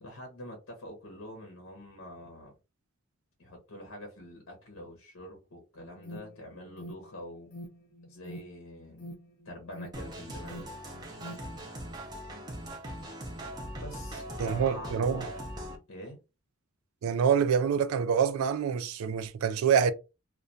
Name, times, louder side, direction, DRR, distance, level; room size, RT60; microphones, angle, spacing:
voice 1, 0.0-2.5 3.4-7.5 8.0-9.1 9.4-10.7 13.0-13.2 13.8-15.3 15.9-16.2, left 1 dB, 85° left, 0.7 m, -45 dB
Alarm, 5.8-11.6, left 1 dB, 45° left, 0.5 m, -47 dB
sound 1, 9.9-15.8, equal, 20° right, 0.4 m, -40 dB
voice 2, 14.4-15.3 17.0-19.9, right 7 dB, 80° right, 0.3 m, -26 dB
2.2 x 2.2 x 2.6 m
head